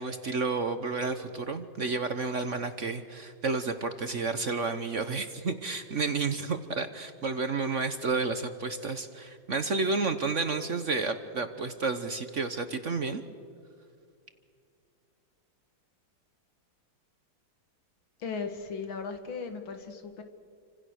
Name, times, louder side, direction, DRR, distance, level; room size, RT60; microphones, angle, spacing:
voice 1, 0.0-13.2, right 4 dB, 45° right, 9 dB, 1.2 m, -31 dB
voice 2, 18.2-20.2, left 5 dB, 80° left, 7 dB, 2.5 m, -37 dB
29.5 x 25.5 x 6.5 m, 2.3 s
omnidirectional pair, 2.2 m